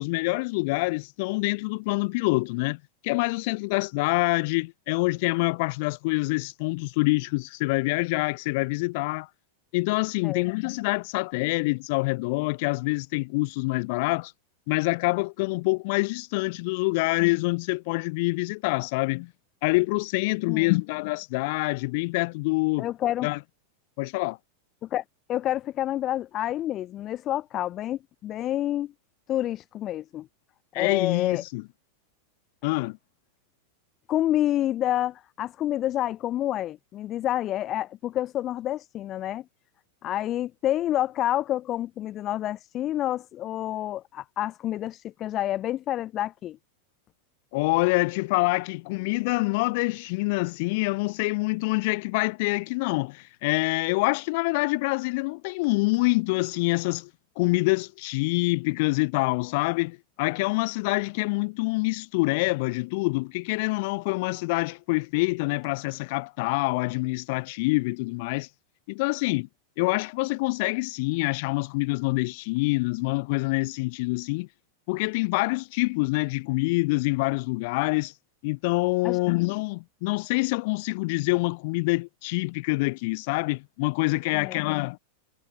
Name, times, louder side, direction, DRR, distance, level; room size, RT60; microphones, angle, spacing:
voice 1, 0.0-9.3 9.7-14.3 14.7-19.3 19.6-22.9 23.2-23.4 24.0-24.4 30.7-31.6 32.6-33.0 47.5-57.1 57.4-68.5 68.9-69.5 69.8-74.5 74.9-78.1 78.4-85.0, left 26 dB, 50° left, 1.4 m, -26 dB
voice 2, 22.8-23.3 24.8-25.0 25.3-28.9 29.3-30.3 30.7-31.4 32.6-32.7 34.1-39.4 40.0-46.6 79.0-79.2 84.3-84.6, left 13 dB, 30° left, 1.3 m, -28 dB
figure-of-eight pair, 90°, 0 cm